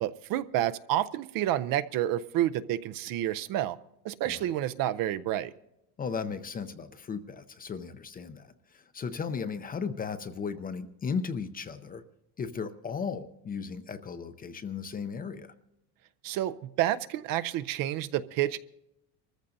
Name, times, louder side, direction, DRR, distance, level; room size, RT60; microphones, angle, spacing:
voice 1, 0.0-3.8 4.0-5.5 16.2-18.6, right 13 dB, 50° right, 13 dB, 0.6 m, -29 dB
voice 2, 6.0-12.0 12.4-15.5, left 6 dB, 20° left, 10 dB, 0.5 m, -36 dB
25.0 x 14.5 x 2.6 m, 0.86 s
cardioid pair, 135°, 43 cm